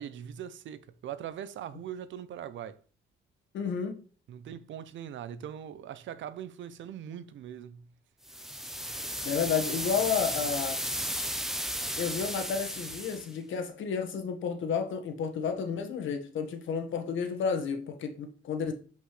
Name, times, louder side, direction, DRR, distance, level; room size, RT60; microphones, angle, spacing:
voice 1, 0.0-2.8 4.3-7.9, right 9 dB, 70° right, 0.7 m, -41 dB
voice 2, 3.5-4.0 9.2-10.8 12.0-18.7, left 6 dB, 75° left, 1.6 m, -31 dB
sound 1, 8.3-13.3, equal, ahead, 0.9 m, -34 dB
7.8 x 5.2 x 3.3 m
cardioid pair, 90°, 20 cm